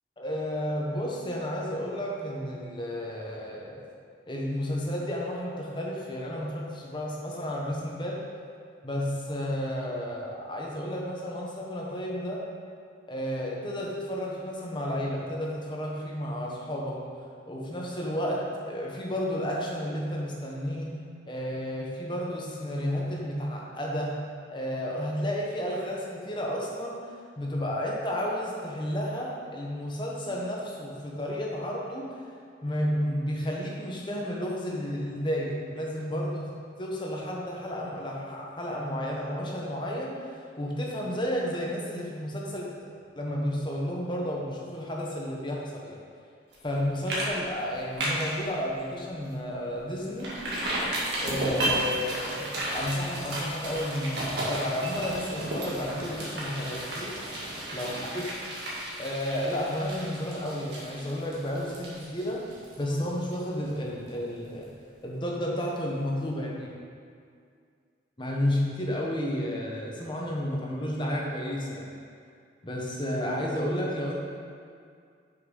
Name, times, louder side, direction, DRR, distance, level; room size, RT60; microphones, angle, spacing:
voice 1, 0.2-3.8 4.3-8.2 8.8-12.5 13.1-17.0 17.5-20.9 21.2-24.2 24.5-32.2 32.6-36.5 36.8-46.0 46.6-50.4 51.2-57.2 57.7-58.2 59.0-62.4 62.8-64.7 65.0-66.7 68.2-71.9 72.6-74.2, equal, 25° left, -3 dB, 1.2 m, -32 dB
sound 1, 46.5-46.8 47.1-47.3 47.6-48.4 48.8-48.9 49.3-49.4 50.2-63.8 64.1-64.2, right 1 dB, 65° right, 1.9 m, -33 dB
6.6 x 6.0 x 5.4 m, 2.2 s
head